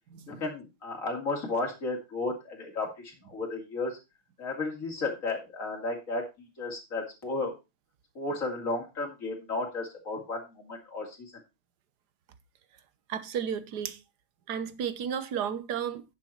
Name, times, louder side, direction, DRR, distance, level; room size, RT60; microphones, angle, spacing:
voice 1, 0.3-4.0 4.4-7.5 8.1-11.3, left 3 dB, 40° left, 3.2 m, -33 dB
voice 2, 13.1-14.0 14.5-16.0, right 8 dB, 55° right, 1.4 m, -33 dB
10.5 x 7.2 x 4.3 m
omnidirectional pair, 2.3 m